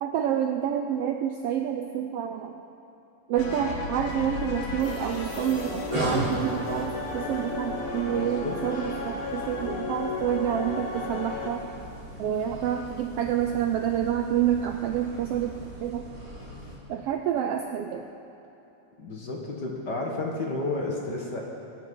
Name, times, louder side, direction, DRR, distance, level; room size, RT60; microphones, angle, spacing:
voice 1, 0.0-2.5 3.3-11.6 12.2-15.6 15.8-16.1 16.9-18.1, right 10 dB, 85° right, 5 dB, 1.3 m, -28 dB
sound 1, 3.4-11.5, left 3 dB, 80° left, 2.9 m, -34 dB
sound 2, 4.0-16.8, equal, 10° right, 3.7 m, -38 dB
voice 2, 8.1-8.6 19.0-21.4, left 2 dB, 45° left, -1 dB, 1.8 m, -31 dB
23.0 x 9.2 x 5.4 m, 3.0 s
omnidirectional pair, 3.4 m